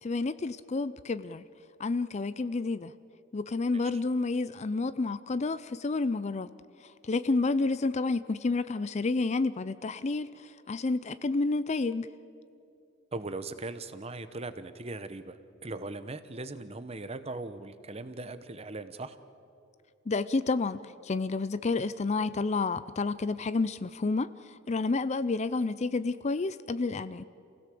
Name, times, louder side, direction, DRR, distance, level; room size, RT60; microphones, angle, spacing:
voice 1, 0.0-1.4 1.8-2.9 3.3-6.5 6.8-12.1 20.1-27.3, left 3 dB, 35° left, 15 dB, 0.4 m, -30 dB
voice 2, 13.1-19.2, right 2 dB, 30° right, 12 dB, 0.9 m, -39 dB
28.0 x 16.5 x 7.7 m, 2.6 s
head